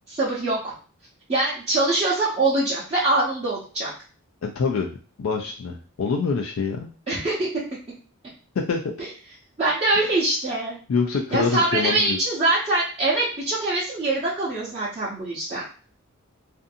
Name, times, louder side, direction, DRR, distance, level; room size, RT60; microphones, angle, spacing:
voice 1, 0.1-0.7 1.3-3.9 7.1-7.6 9.0-9.1 9.6-10.8 11.3-15.6, right 2 dB, 30° right, -9 dB, 0.8 m, -23 dB
voice 2, 4.4-4.9 5.2-6.9 8.6-8.8 10.0-10.1 10.9-12.2, left 5 dB, 65° left, 1 dB, 0.4 m, -25 dB
2.6 x 2.5 x 2.5 m, 0.38 s
head